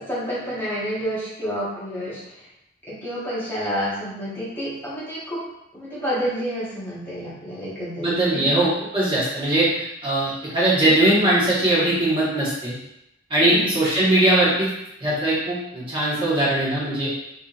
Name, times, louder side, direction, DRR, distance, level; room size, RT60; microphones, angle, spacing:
voice 1, 0.0-2.5 2.9-5.4 5.7-8.5 13.4-13.8, equal, 10° left, -10 dB, 1.2 m, -29 dB
voice 2, 8.0-9.7 10.0-12.8 13.3-14.7 15.0-17.1, right 1 dB, 25° right, -9 dB, 1.3 m, -20 dB
4.8 x 2.8 x 2.5 m, 0.83 s
head